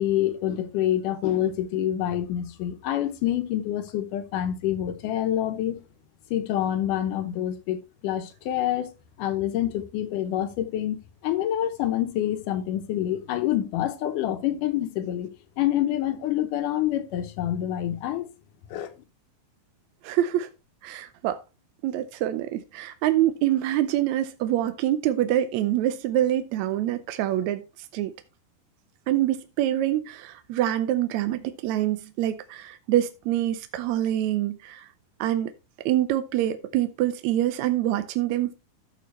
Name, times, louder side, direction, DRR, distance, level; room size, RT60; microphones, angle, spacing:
voice 1, 0.0-5.8 6.3-8.9 9.2-11.0 11.2-18.3 18.7-18.9, left 12 dB, 75° left, 2.4 m, -27 dB
voice 2, 20.0-20.5 20.8-21.4 21.8-27.6 27.9-28.1 29.1-34.9 35.2-35.5 35.8-38.5, right 12 dB, 80° right, 1.7 m, -25 dB
13.5 x 6.1 x 3.2 m
omnidirectional pair, 3.9 m